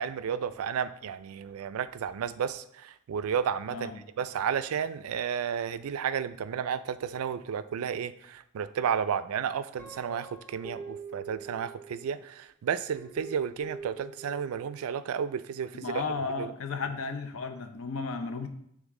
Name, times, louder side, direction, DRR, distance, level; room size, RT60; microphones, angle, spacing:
voice 1, 0.0-16.0 16.4-16.5, right 7 dB, 90° right, 14 dB, 0.3 m, -32 dB
voice 2, 3.7-4.1 15.7-18.5, left 4 dB, 70° left, 7 dB, 0.6 m, -34 dB
Guitar, 9.8-12.2 12.9-14.9, right 4 dB, 5° left, 0.7 m, -44 dB
7.1 x 3.6 x 3.6 m, 0.73 s
head